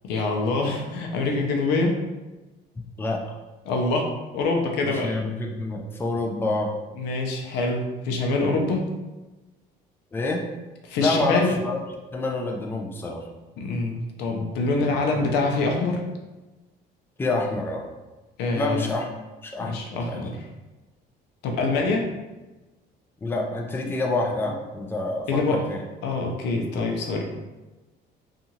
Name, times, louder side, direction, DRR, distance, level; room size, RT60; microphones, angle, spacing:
voice 1, 0.0-2.0 3.7-5.1 7.0-8.8 10.9-11.5 13.6-16.0 18.4-18.9 19.6-20.4 21.4-22.0 25.3-25.6 26.0-27.2, left 3 dB, 85° left, 1 dB, 0.5 m, -25 dB
voice 2, 4.8-6.7 10.1-10.4 11.0-11.8 12.1-13.3 14.9-15.0 17.2-17.8 18.5-19.1 19.4-20.3 21.7-22.1 23.2-25.8, left 2 dB, 15° left, 0 dB, 0.4 m, -27 dB
2.8 x 2.4 x 2.7 m, 1.1 s
cardioid pair, 110°, 17 cm